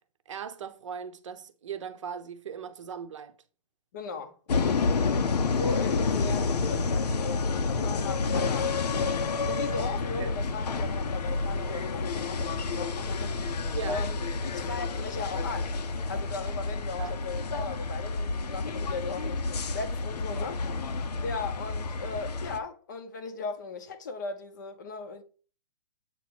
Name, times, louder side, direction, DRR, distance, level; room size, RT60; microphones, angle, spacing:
voice 1, 0.3-3.4 10.2-10.3 13.7-14.0 17.0-17.1, right 7 dB, 50° right, 0.8 m, -38 dB
voice 2, 3.9-4.7 5.5-8.7 9.5-13.3 13.9-15.7 16.1-20.6 21.2-25.2, left 4 dB, 30° left, 0.6 m, -37 dB
sound 1, 4.5-22.6, left 4 dB, 90° left, 0.9 m, -29 dB
8.0 x 2.9 x 6.0 m
hypercardioid pair, 180°, 20 cm